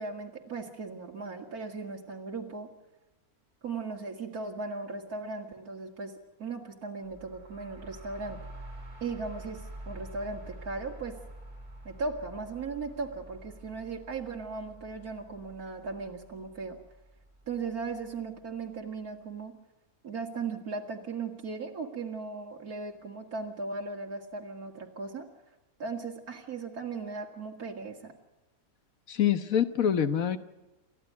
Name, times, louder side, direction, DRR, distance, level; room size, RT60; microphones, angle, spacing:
voice 1, 0.0-2.7 3.6-6.1 6.4-8.4 9.0-11.1 11.8-16.8 17.5-19.5 20.0-25.3 25.8-28.1, right 4 dB, 85° right, 0 dB, 2.7 m, -37 dB
sound 1, 7.0-18.7, right 1 dB, 25° right, 3.9 m, -48 dB
voice 2, 29.1-30.4, left 9 dB, 70° left, 10 dB, 1.5 m, -25 dB
29.0 x 13.5 x 9.5 m, 1.0 s
omnidirectional pair, 1.5 m